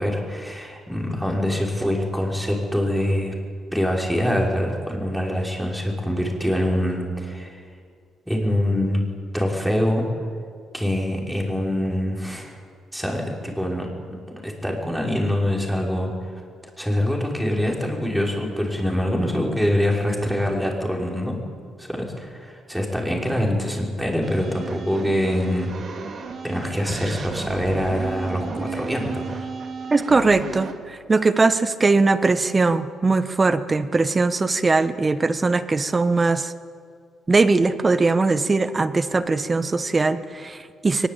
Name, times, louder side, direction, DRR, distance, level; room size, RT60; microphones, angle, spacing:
voice 1, 0.0-3.4 3.7-7.6 8.3-9.0 9.3-10.0 10.7-12.6 12.9-14.2 14.4-16.4 16.8-21.4 21.8-25.7 26.4-29.5, equal, ahead, -1 dB, 5.5 m, -24 dB
sound 1, 24.2-30.7, right 5 dB, 55° right, 2.7 m, -34 dB
voice 2, 29.9-36.5 37.3-41.1, right 3 dB, 25° right, 12 dB, 1.2 m, -20 dB
22.5 x 21.0 x 8.9 m, 2.1 s
cardioid pair, 90°, 0 cm